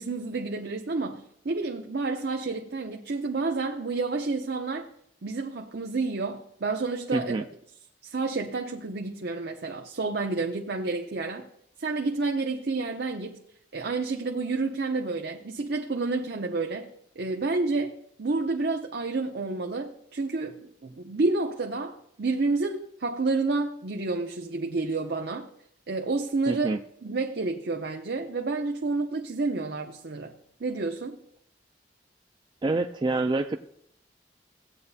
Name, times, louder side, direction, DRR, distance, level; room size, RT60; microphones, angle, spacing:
voice 1, 0.0-4.9 5.2-7.4 8.0-11.5 11.8-13.4 13.7-16.9 17.2-25.5 25.9-26.7 27.0-30.3 30.6-31.2, right 3 dB, 60° right, 0.7 m, -29 dB
voice 2, 7.1-7.4 26.5-26.8 32.6-33.6, right 2 dB, 25° right, 0.3 m, -26 dB
16.5 x 8.7 x 2.7 m
head